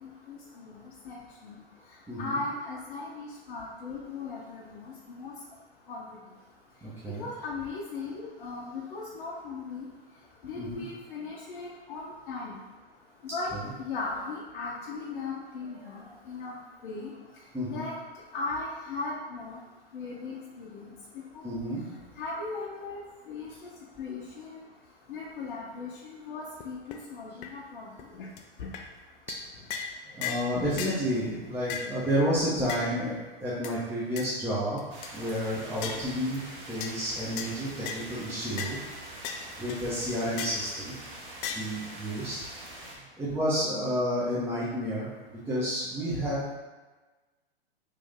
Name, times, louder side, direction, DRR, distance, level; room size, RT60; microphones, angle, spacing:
voice 1, 0.0-0.8 1.0-1.6 2.2-5.3 5.9-6.1 7.1-9.8 10.4-12.6 13.3-13.5 13.8-16.6 16.8-17.1 17.7-17.9 18.3-19.6 19.9-20.9 21.3-21.4 22.2-23.0 23.3-23.7 24.0-24.6 25.1-28.3 35.8-35.9 43.3-43.4, left 3 dB, 60° left, -5 dB, 0.7 m, -38 dB
voice 2, 2.1-2.4 6.8-7.2 10.6-10.8 13.5-13.6 17.5-17.8 21.4-21.8 30.1-33.1 33.4-34.8 35.1-36.4 36.7-38.8 39.6-40.9 41.5-42.4 43.2-46.5, equal, 5° right, -9 dB, 0.7 m, -30 dB
sound 1, 26.6-26.7 26.9-27.0 27.4-27.5 28.0-28.1 28.4-28.5 28.7-28.9 29.3-29.4 29.7-29.9 30.2-30.5 30.8-31.0 31.7-31.9 32.7-32.9 33.6-33.7 34.2-34.3 34.8-35.1 35.8-36.0 36.8-37.0 37.4-37.5 37.9-38.1 38.6-38.7 39.2-39.4 39.7-39.8 40.4-40.6 41.4-41.6, left 7 dB, 35° left, 0.4 m, -35 dB
sound 2, 34.9-43.0, right 1 dB, 60° right, 0.9 m, -44 dB
3.2 x 2.6 x 3.6 m, 1.2 s
figure-of-eight pair, 100°, 30 cm